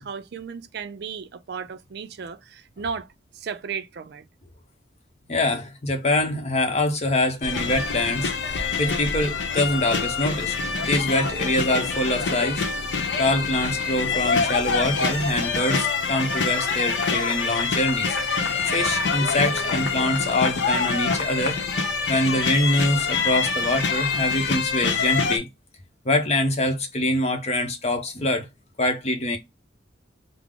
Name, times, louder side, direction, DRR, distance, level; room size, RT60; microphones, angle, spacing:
voice 1, 0.0-3.1 3.3-4.2, right 6 dB, 55° right, 0.4 m, -34 dB
voice 2, 5.3-12.7 12.9-21.6 22.1-25.5 26.0-28.5 28.8-29.4, left 1 dB, 35° left, 0.7 m, -25 dB
sound 1, 7.4-25.4, left 5 dB, 65° left, 0.7 m, -25 dB
3.6 x 2.0 x 3.5 m
head